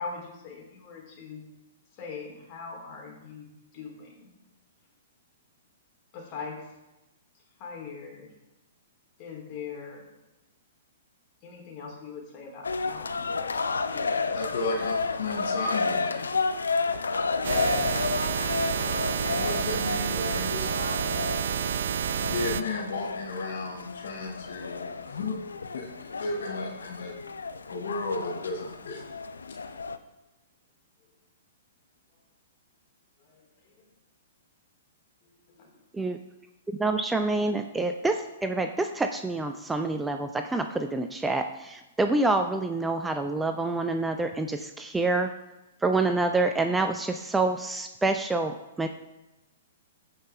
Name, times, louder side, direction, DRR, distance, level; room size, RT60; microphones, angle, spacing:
voice 1, 0.0-1.4 2.0-3.5 3.7-4.3 6.1-6.6 7.6-8.3 9.2-10.0 11.4-13.5 13.9-14.2 33.2-33.9 35.5-35.7, left 5 dB, 40° left, 0 dB, 3.1 m, -41 dB
sound 1, 12.6-30.0, left 4 dB, 80° left, 0.6 m, -31 dB
voice 2, 14.3-16.4 17.8-18.0 19.2-20.7 22.2-29.1, left 3 dB, 65° left, 1 dB, 1.3 m, -34 dB
sound 2, 17.4-22.6, right 9 dB, 65° right, 0.4 m, -29 dB
voice 3, 36.8-45.3 45.8-48.9, right 2 dB, 10° right, 6 dB, 0.5 m, -27 dB
15.5 x 5.4 x 3.4 m, 1.0 s
figure-of-eight pair, 115°, 0 cm